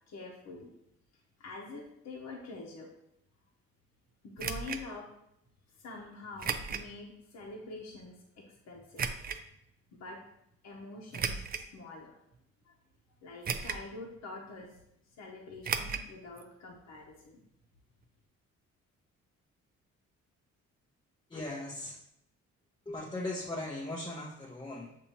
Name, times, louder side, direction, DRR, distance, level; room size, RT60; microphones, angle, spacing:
voice 1, 0.1-0.7 1.4-2.9 4.2-5.1 5.7-9.2 9.9-10.2 10.6-12.2 12.6-12.8 13.2-14.7 15.2-17.4, left 3 dB, 65° left, -1 dB, 0.9 m, -46 dB
sound 1, 4.4-4.8 6.4-6.9 7.4-7.5 9.0-9.4 11.1-11.7 12.3-12.4 13.4-13.9 14.2-14.3 15.6-16.1 16.4-16.5 16.7-16.8, right 6 dB, 30° right, 0.4 m, -35 dB
voice 2, 21.3-22.0 22.9-25.0, left 2 dB, 15° left, -3 dB, 0.6 m, -38 dB
6.7 x 2.7 x 2.9 m, 0.80 s
cardioid pair, 90°, 30 cm